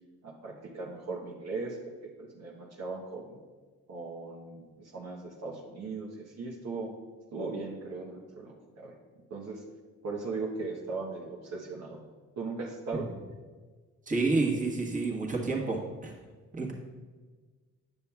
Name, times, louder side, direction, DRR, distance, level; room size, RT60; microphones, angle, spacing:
voice 1, 0.2-1.8 2.0-3.4 3.9-6.9 7.3-8.9 9.3-9.6 10.0-12.0 12.4-13.1, right 3 dB, 60° right, -2 dB, 1.1 m, -38 dB
voice 2, 14.1-15.8 16.0-16.1 16.5-16.7, right 3 dB, 25° right, -1 dB, 1.4 m, -29 dB
9.4 x 7.1 x 2.3 m, 1.4 s
cardioid pair, 90°, 30 cm